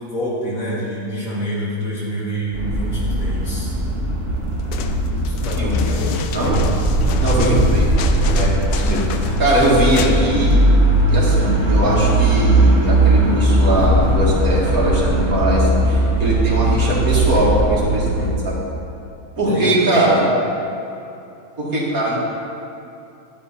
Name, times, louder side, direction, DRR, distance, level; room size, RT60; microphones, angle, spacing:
voice 1, 0.0-3.7 5.3-6.2 8.6-8.9 19.5-20.3, equal, 60° left, -7 dB, 3.0 m, -27 dB
sound 1, 2.5-18.3, right 1 dB, 35° right, 1.6 m, -18 dB
sound 2, 4.6-10.2 10.5-10.6, left 7 dB, 75° left, 1.2 m, -31 dB
voice 2, 7.2-10.6 11.1-18.6 19.4-20.2 21.6-22.2, right 1 dB, 65° right, -5 dB, 2.5 m, -20 dB
12.0 x 8.8 x 4.2 m, 2.7 s
omnidirectional pair, 1.7 m